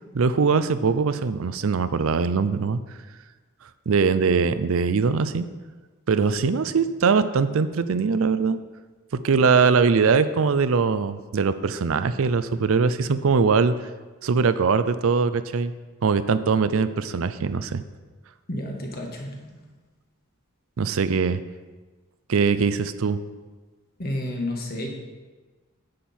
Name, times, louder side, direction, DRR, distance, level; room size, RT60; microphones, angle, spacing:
voice 1, 0.1-2.8 3.9-5.5 6.1-8.6 9.2-13.7 14.2-15.7 16.0-17.8 20.8-21.4 22.3-23.2, right 5 dB, 65° right, 12 dB, 0.5 m, -21 dB
voice 2, 18.5-19.7 24.0-24.9, left 1 dB, 45° left, 1 dB, 1.5 m, -31 dB
10.0 x 7.5 x 4.3 m, 1.3 s
head